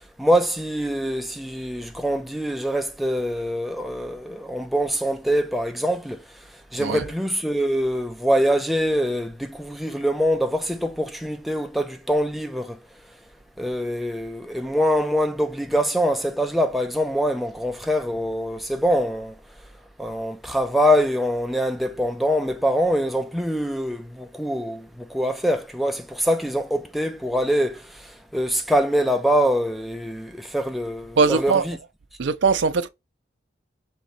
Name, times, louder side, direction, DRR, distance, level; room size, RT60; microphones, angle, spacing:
voice 1, 0.2-6.2 6.7-12.8 13.6-19.4 20.0-31.8, equal, ahead, 0.4 m, -24 dB
voice 2, 31.2-31.6 32.2-32.9, right 4 dB, 75° right, 0.5 m, -20 dB
3.5 x 2.9 x 4.1 m
head